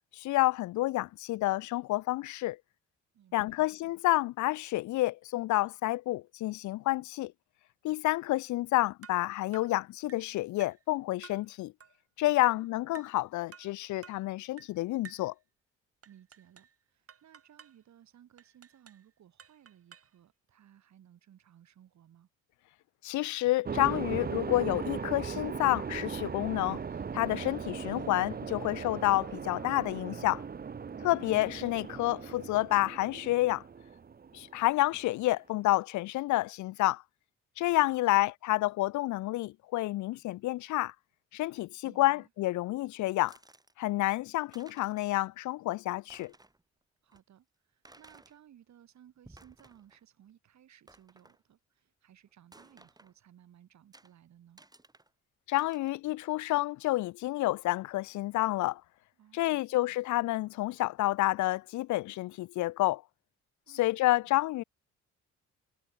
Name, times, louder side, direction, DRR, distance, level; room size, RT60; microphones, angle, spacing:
voice 1, 0.1-2.6 3.3-7.3 7.8-11.7 12.2-15.3 23.0-26.8 27.1-30.4 31.0-33.6 34.3-37.0 37.6-40.9 41.3-43.4 43.8-46.3 55.5-58.8 59.3-63.0 63.7-64.6, left 17 dB, 75° left, 0.5 m, -29 dB
voice 2, 3.1-3.7 12.4-12.7 16.0-22.3 31.0-31.4 37.9-38.3 41.8-42.2 47.0-54.6 59.2-60.0 63.7-63.9 64.2-64.4, right 10 dB, 65° right, 4.9 m, -60 dB
sound 1, 9.0-9.3 9.5-9.8 10.1-10.3 10.6-10.8 11.2-11.5 11.8-12.0 12.4-12.7 13.0-13.2 13.5-13.8 14.0-14.3 14.6-14.8 15.0-15.3 16.0-16.8 17.1-17.8 18.4-19.1 19.4-20.2, right 7 dB, 50° right, 7.7 m, -53 dB
sound 2, 23.7-35.1, right 6 dB, 30° right, 1.1 m, -39 dB
sound 3, 43.3-43.7 44.2-44.3 44.5-45.2 45.5-45.6 46.0-46.6 47.1-47.2 47.9-48.4 49.1-50.0 50.3-50.4 50.9-51.4 52.5-53.1 53.9-54.1 54.6-55.1 55.6-56.0, right 2 dB, 15° right, 3.6 m, -58 dB
cardioid pair, 90°, 30 cm